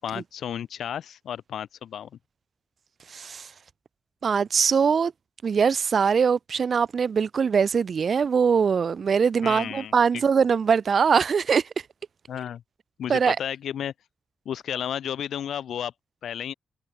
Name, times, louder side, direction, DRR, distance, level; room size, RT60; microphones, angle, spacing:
voice 1, 0.0-2.1 9.4-10.2 12.3-12.6 13.0-13.9 14.4-15.9 16.2-16.5, left 9 dB, 85° left, 7.9 m, -32 dB
voice 2, 3.1-3.5 4.2-5.1 5.4-11.6 13.1-13.4, right 6 dB, 45° right, 1.0 m, -22 dB
wide cardioid pair, 180°, 0 cm